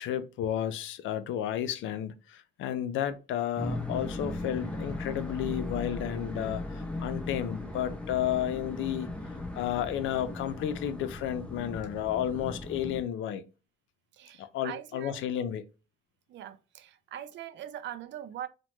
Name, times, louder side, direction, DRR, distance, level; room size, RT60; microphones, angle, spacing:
voice 1, 0.0-9.1 9.6-13.4 14.4-15.6, left 10 dB, 80° left, 0.4 m, -32 dB
sound 1, 3.6-13.0, left 2 dB, 5° left, 0.5 m, -37 dB
voice 2, 14.1-15.2 16.3-18.5, right 11 dB, 65° right, 0.4 m, -42 dB
2.9 x 2.0 x 3.0 m
cardioid pair, 90°, 20 cm